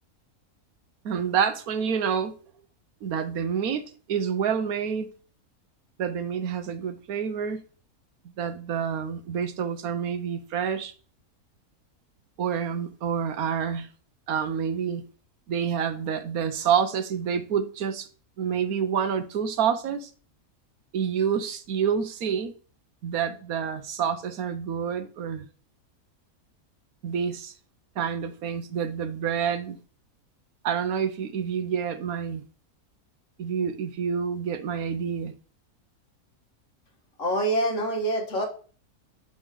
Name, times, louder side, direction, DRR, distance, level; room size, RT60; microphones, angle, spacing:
voice 1, 1.0-2.3 3.0-3.8 4.1-5.1 6.0-7.6 8.4-10.9 12.4-13.9 14.3-15.0 15.5-18.1 18.4-20.1 20.9-22.5 23.0-25.5 27.0-27.5 28.0-29.8 30.6-32.4 33.4-35.3, right 7 dB, 75° right, 1.2 m, -28 dB
voice 2, 37.2-38.5, right 1 dB, 55° left, 2.0 m, -25 dB
5.9 x 5.4 x 4.8 m
omnidirectional pair, 1.6 m